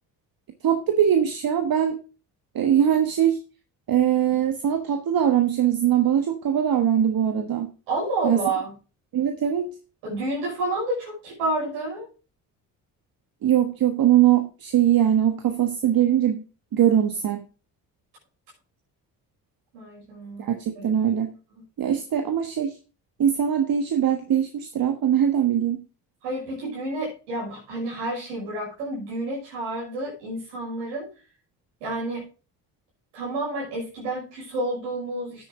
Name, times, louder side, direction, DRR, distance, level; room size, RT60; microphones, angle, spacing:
voice 1, 0.6-2.0 2.5-3.4 3.9-7.7 8.2-8.4 9.1-9.7 13.4-16.4 16.7-17.4 20.4-21.3 21.8-22.7 23.2-25.8, right 10 dB, 45° right, 7 dB, 1.3 m, -21 dB
voice 2, 7.9-8.7 10.0-12.1 19.7-20.4 20.8-20.9 26.2-31.1 31.8-32.2 33.1-35.5, right 2 dB, 75° right, -6 dB, 6.0 m, -29 dB
10.0 x 8.9 x 3.7 m, 0.34 s
hypercardioid pair, 50°, 47 cm